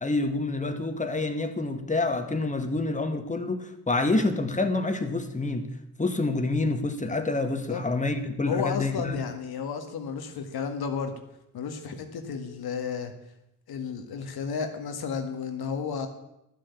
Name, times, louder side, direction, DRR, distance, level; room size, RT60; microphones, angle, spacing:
voice 1, 0.0-5.7 6.0-9.2, left 2 dB, 20° left, 7 dB, 1.8 m, -27 dB
voice 2, 8.4-11.2 11.5-13.1 13.7-16.1, left 6 dB, 75° left, 6 dB, 2.0 m, -32 dB
12.5 x 7.6 x 8.5 m, 0.85 s
cardioid pair, 80°, 38 cm